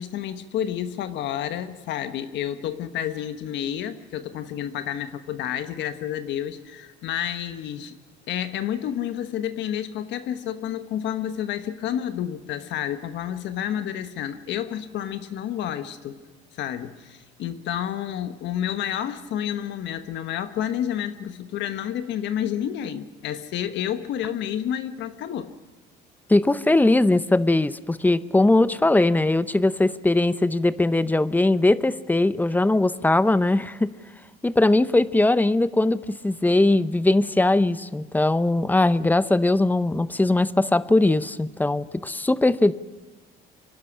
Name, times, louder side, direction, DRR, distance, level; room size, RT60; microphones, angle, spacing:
voice 1, 0.0-8.0 8.3-16.2 16.6-25.5, left 10 dB, 70° left, 10 dB, 1.3 m, -30 dB
voice 2, 26.3-33.9 34.4-42.7, left 2 dB, 10° left, 16 dB, 0.6 m, -20 dB
25.0 x 11.5 x 9.9 m, 1.2 s
cardioid pair, 110°, 19 cm